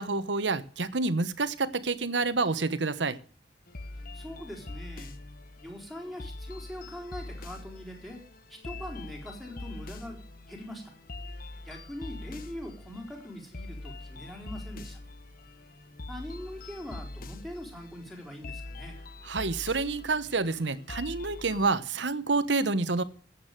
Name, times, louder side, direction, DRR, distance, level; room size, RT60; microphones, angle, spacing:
voice 1, 0.0-3.2 19.3-23.0, right 3 dB, 75° right, 14 dB, 1.2 m, -28 dB
sound 1, 3.7-21.7, left 2 dB, 50° left, 1.0 m, -43 dB
voice 2, 4.1-5.1 5.6-8.2 8.5-10.2 10.5-10.8 11.6-15.0 16.1-19.0, left 1 dB, ahead, 1 dB, 4.1 m, -42 dB
14.0 x 8.7 x 9.1 m, 0.41 s
head